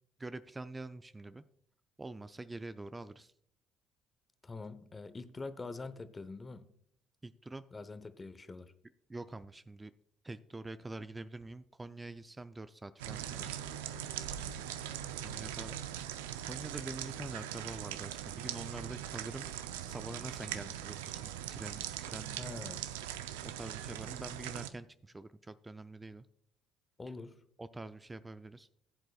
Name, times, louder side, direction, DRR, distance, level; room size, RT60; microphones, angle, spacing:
voice 1, 0.2-1.4 2.0-3.3 7.2-7.6 9.1-9.9 10.2-13.5 15.2-15.7 16.5-19.5 19.9-22.4 23.5-26.3 27.6-28.7, right 2 dB, 20° right, 12 dB, 0.4 m, -45 dB
voice 2, 4.4-6.7 7.7-8.7 22.3-22.8 27.0-27.4, left 3 dB, 25° left, 12 dB, 0.9 m, -44 dB
sound 1, 13.0-24.7, right 10 dB, 85° right, 0.5 m, -41 dB
15.0 x 7.9 x 2.3 m, 0.66 s
hypercardioid pair, 60°, 0 cm